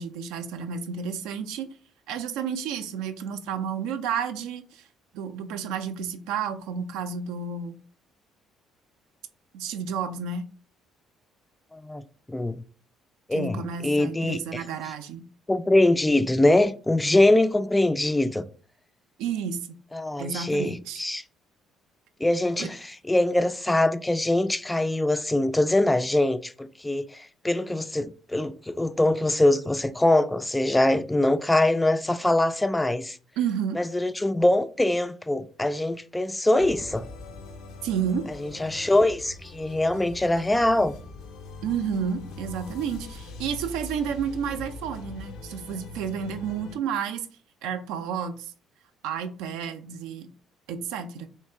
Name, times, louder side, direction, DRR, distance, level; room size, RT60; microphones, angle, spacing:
voice 1, 0.0-1.7 2.1-4.9 5.1-7.8 9.5-10.5 13.3-15.3 19.2-19.8 20.2-21.0 22.6-22.7 33.4-33.8 37.8-38.3 41.6-47.3 47.6-48.5 49.0-50.3 50.7-51.3, right 7 dB, 70° right, 0.3 m, -31 dB
voice 2, 11.7-12.0 12.3-12.6 13.3-14.6 15.5-18.4 19.9-21.2 22.2-33.2 33.7-37.1 38.4-41.0, left 1 dB, 15° left, 0.3 m, -23 dB
sound 1, 36.6-46.8, left 3 dB, 70° left, 0.5 m, -42 dB
3.1 x 2.9 x 3.3 m
hypercardioid pair, 50°, 0 cm